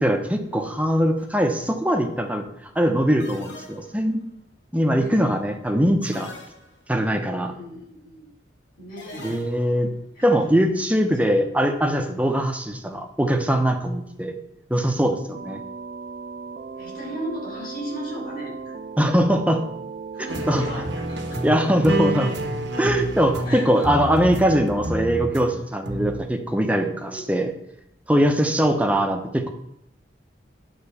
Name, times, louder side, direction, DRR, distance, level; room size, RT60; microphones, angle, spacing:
voice 1, 0.0-4.2 4.7-6.3 6.9-7.5 9.2-9.9 10.2-14.3 14.7-15.6 19.0-19.6 20.5-20.6 21.4-22.3 22.8-27.5 28.1-29.5, equal, 10° right, 4 dB, 0.8 m, -21 dB
sound 1, 1.2-1.5 3.2-4.2 6.0-7.0 9.0-9.9, left 1 dB, 85° left, 1.3 m, -42 dB
voice 2, 4.8-5.2 7.4-8.2 8.8-9.3 10.2-11.5 14.7-14.9 16.8-18.8 20.1-21.9 23.4-24.0 27.0-27.3 28.4-29.0, equal, 50° left, -3 dB, 3.7 m, -37 dB
sound 2, 15.3-22.9, right 4 dB, 45° right, 0.4 m, -37 dB
sound 3, 20.3-25.4 25.9-26.2, right 1 dB, 85° right, 1.3 m, -29 dB
10.0 x 3.9 x 7.0 m, 0.80 s
head